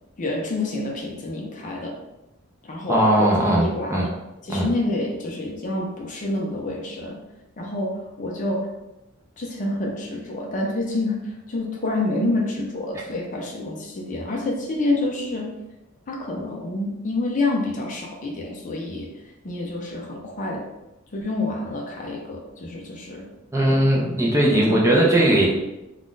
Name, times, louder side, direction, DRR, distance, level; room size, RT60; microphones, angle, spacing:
voice 1, 0.2-1.9 2.6-3.3 3.6-4.1 4.4-7.2 7.6-8.7 9.4-15.5 16.1-20.6 21.1-23.2 23.7-23.8 24.5-25.1 25.3-25.5, left 2 dB, 35° left, 0 dB, 0.5 m, -28 dB
voice 2, 2.9-4.1 4.5-4.7 23.5-25.5, right 1 dB, 15° right, -4 dB, 0.5 m, -19 dB
2.5 x 2.4 x 3.6 m, 0.95 s
head